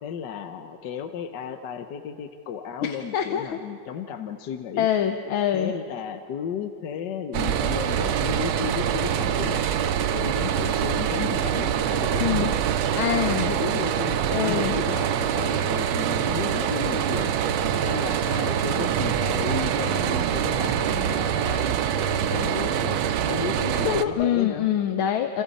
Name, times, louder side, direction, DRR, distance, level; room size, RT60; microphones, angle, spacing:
voice 1, 0.0-4.9 5.5-9.8 10.1-12.6 13.3-17.4 17.8-24.7, left 7 dB, 65° left, 8 dB, 1.4 m, -34 dB
voice 2, 2.8-3.6 4.8-5.7 12.2-12.5 13.0-13.5 14.3-14.8 17.6-17.9 21.1-21.2 23.8-25.4, left 10 dB, 80° left, 6 dB, 1.7 m, -25 dB
sound 1, 7.3-24.0, right 9 dB, 85° right, 1.6 m, -25 dB
29.5 x 26.5 x 4.2 m, 2.4 s
omnidirectional pair, 2.2 m